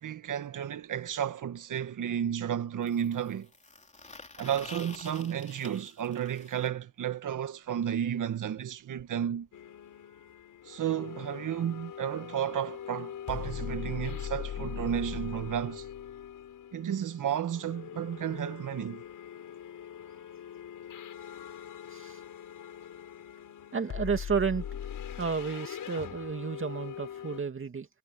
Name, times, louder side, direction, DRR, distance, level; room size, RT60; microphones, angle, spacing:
voice 1, 0.0-3.5 4.4-9.5 10.6-15.8 16.7-19.0, right 9 dB, 55° right, 1.6 m, -32 dB
sound 1, 0.8-0.9 2.8-6.7 8.6-8.7 9.0-9.1 9.3-9.5 10.4-10.5, left 3 dB, 20° left, 3.2 m, -49 dB
sound 2, 9.5-27.4, left 9 dB, 60° left, 6.0 m, -41 dB
voice 2, 21.9-22.2 23.7-24.7 25.2-27.9, right 5 dB, 35° right, 2.4 m, -32 dB
cardioid pair, 105°, 37 cm